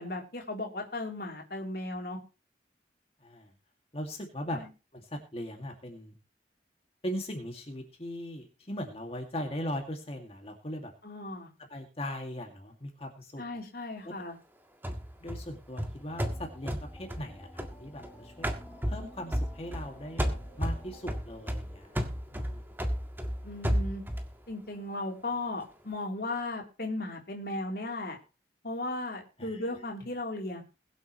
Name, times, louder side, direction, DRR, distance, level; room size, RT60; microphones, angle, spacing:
voice 1, 0.0-2.2 4.5-4.7 11.0-11.5 13.4-14.4 23.4-24.0 24.5-28.2 28.6-30.6, left 2 dB, 60° left, 0 dB, 3.4 m, -36 dB
voice 2, 3.9-4.6 4.9-6.2 7.0-10.9 11.7-13.4 14.0-14.2 15.2-18.5 18.9-22.0 22.3-22.7 29.4-29.6, equal, 35° left, 3 dB, 2.2 m, -39 dB
sound 1, 14.8-18.1 18.4-19.9 20.2-24.3, equal, 10° right, 1.7 m, -33 dB
sound 2, 16.1-21.2, equal, 5° left, 2.2 m, -51 dB
22.0 x 8.0 x 3.1 m, 0.32 s
head